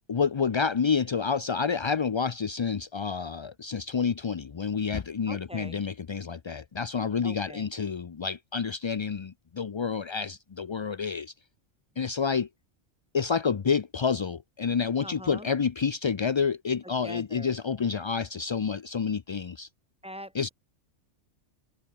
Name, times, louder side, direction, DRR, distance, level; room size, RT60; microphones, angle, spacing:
voice 1, 0.1-11.3 12.0-12.5 13.1-19.7 20.3-20.5, left 6 dB, 50° left, 0.3 m, -29 dB
voice 2, 5.3-5.8 7.2-7.7 15.0-15.5 16.8-17.6 20.0-20.5, equal, 5° right, 6.8 m, -43 dB
omnidirectional pair, 1.2 m